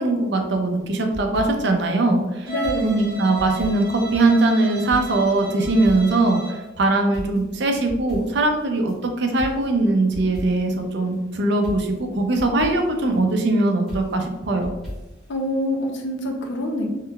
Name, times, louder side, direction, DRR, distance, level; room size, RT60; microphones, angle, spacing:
voice 1, 0.0-2.5 2.8-14.7, right 2 dB, 55° right, 3 dB, 0.5 m, -21 dB
sound 1, 0.8-1.8 2.6-4.5 4.9-6.3 6.6-6.7 7.1-9.0 9.4-10.8 11.1-11.2 11.6-13.4 13.9-15.3 15.6-15.7, equal, ahead, 1.4 m, -37 dB
Bowed string instrument, 2.4-6.7, right 3 dB, 20° right, 1.5 m, -34 dB
voice 2, 2.5-3.1 15.3-16.9, left 1 dB, 65° left, 2 dB, 0.6 m, -25 dB
3.7 x 3.2 x 2.2 m, 1.0 s
head